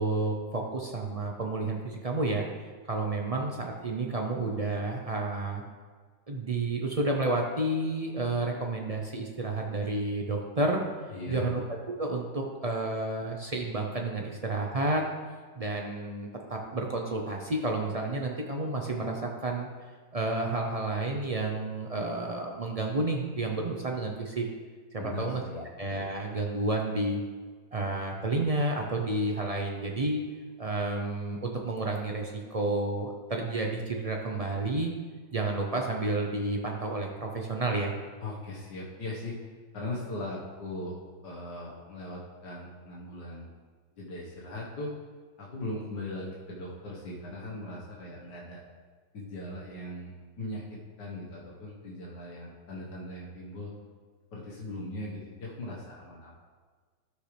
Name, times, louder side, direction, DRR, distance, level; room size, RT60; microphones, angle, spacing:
voice 1, 0.0-2.5 2.9-5.6 6.3-10.8 11.3-11.6 12.0-15.0 15.6-19.7 20.1-24.5 24.9-27.2 27.7-30.2 30.6-34.9 35.3-37.9, right 2 dB, 55° right, 0 dB, 0.4 m, -30 dB
voice 2, 11.1-11.6 25.0-25.7 38.2-39.4 39.7-41.0 41.2-43.5 44.0-44.9 45.4-48.6 49.1-53.7 54.3-56.3, left 2 dB, 70° left, -4 dB, 2.0 m, -39 dB
13.0 x 6.5 x 3.3 m, 1.5 s
omnidirectional pair, 1.9 m